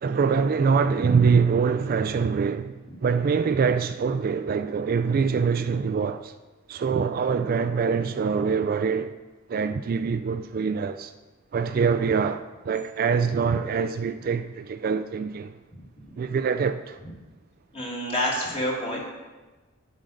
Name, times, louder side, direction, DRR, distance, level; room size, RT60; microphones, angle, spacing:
voice 1, 0.0-6.3 6.7-9.1 9.5-11.1 11.5-15.6 16.2-17.0, right 5 dB, 45° right, 0.3 m, -24 dB
voice 2, 17.7-19.0, equal, 30° left, 2.2 m, -28 dB
9.3 x 5.1 x 6.4 m
head